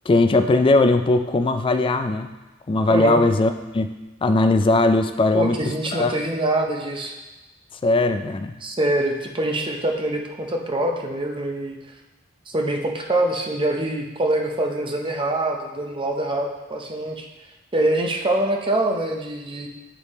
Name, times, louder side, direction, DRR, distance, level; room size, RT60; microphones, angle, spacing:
voice 1, 0.1-2.3 2.7-3.9 4.2-5.6 5.9-6.2 7.8-8.5, left 2 dB, 25° left, 8 dB, 0.3 m, -19 dB
voice 2, 2.9-3.2 5.3-7.2 8.6-11.8 12.5-17.3 17.7-19.7, right 1 dB, 25° right, 2 dB, 0.7 m, -24 dB
8.9 x 3.4 x 4.1 m, 1.1 s
head